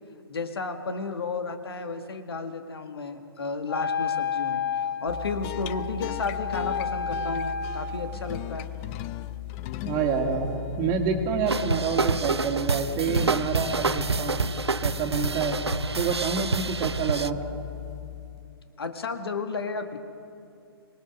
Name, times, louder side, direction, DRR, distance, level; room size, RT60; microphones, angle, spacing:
voice 1, 0.3-8.7 18.8-20.0, left 4 dB, 70° left, 7 dB, 1.8 m, -33 dB
Wind instrument woodwind instrument, 3.7-8.2, left 5 dB, 50° left, 1.8 m, -31 dB
sound 1, 5.1-18.6, left 13 dB, 30° left, 0.6 m, -37 dB
voice 2, 9.9-14.4 14.8-15.5 16.0-17.4, right 6 dB, 30° right, 4 dB, 2.2 m, -27 dB
sound 2, 11.5-17.3, right 4 dB, 90° right, 0.6 m, -28 dB
25.0 x 19.0 x 6.2 m, 2.6 s
figure-of-eight pair, 125°, 13 cm